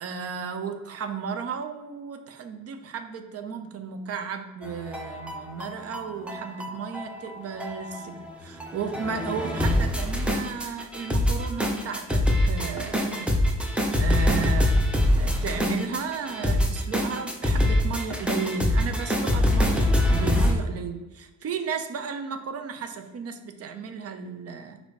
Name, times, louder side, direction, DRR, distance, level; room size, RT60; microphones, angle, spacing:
voice 1, 0.0-13.3 13.9-14.8 15.1-24.8, right 6 dB, 55° right, 7 dB, 0.6 m, -34 dB
sound 1, 4.6-20.5, left 1 dB, 5° right, 0.6 m, -24 dB
6.1 x 2.7 x 3.2 m, 1.1 s
cardioid pair, 90°, 30 cm